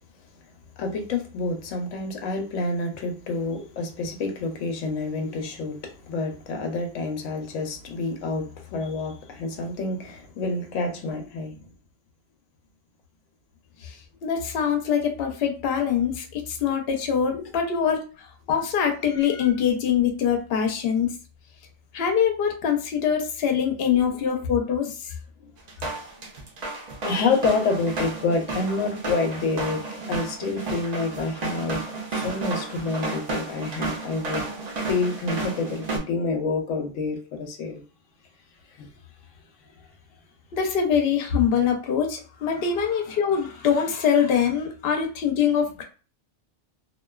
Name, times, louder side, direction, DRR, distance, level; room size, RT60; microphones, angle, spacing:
voice 1, 0.8-11.6 17.3-17.5 25.4-25.5 27.0-34.4 34.9-37.8 38.8-38.9, left 3 dB, 90° left, 1.0 m, -28 dB
voice 2, 14.2-21.1 21.9-25.1 40.5-45.8, left 7 dB, 60° left, 0.8 m, -24 dB
sound 1, 25.7-36.0, right 3 dB, 50° right, 0.5 m, -32 dB
2.4 x 2.2 x 2.2 m
omnidirectional pair, 1.3 m